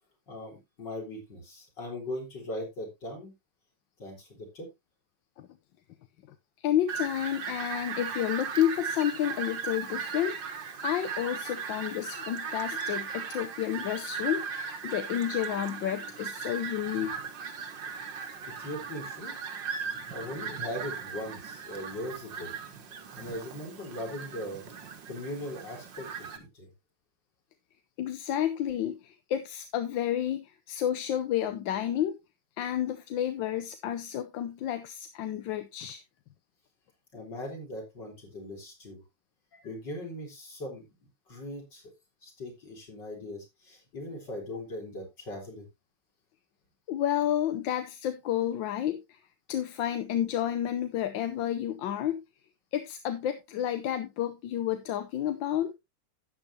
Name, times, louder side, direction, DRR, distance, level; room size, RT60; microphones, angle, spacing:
voice 1, 0.3-3.3 4.0-4.7 18.1-18.3 18.6-19.3 20.1-22.5 23.2-24.6 25.1-26.7 37.1-39.0 39.5-40.9 41.3-41.8 42.2-45.6, left 1 dB, 70° left, 4.7 m, -39 dB
voice 2, 6.6-17.2 28.0-32.2 32.6-36.0 46.9-49.2 49.5-52.2 52.7-55.7, left 11 dB, 90° left, 1.5 m, -30 dB
Fowl, 6.9-26.4, right 6 dB, 75° right, 2.1 m, -37 dB
12.0 x 8.7 x 2.8 m
omnidirectional pair, 2.0 m